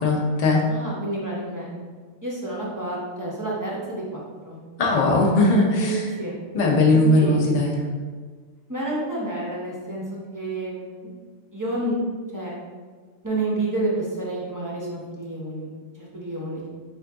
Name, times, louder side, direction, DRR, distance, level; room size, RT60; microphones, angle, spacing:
voice 1, 0.0-0.6 4.8-6.1 6.5-7.7, left 2 dB, 40° left, -1 dB, 0.6 m, -19 dB
voice 2, 0.7-1.8 2.2-4.6 5.8-6.3 6.9-7.6 8.7-10.0 10.3-11.1 11.5-12.0 12.3-12.5 13.2-15.7 15.9-16.7, right 2 dB, 20° right, -5 dB, 0.6 m, -29 dB
4.5 x 2.5 x 3.4 m, 1.5 s
omnidirectional pair, 1.3 m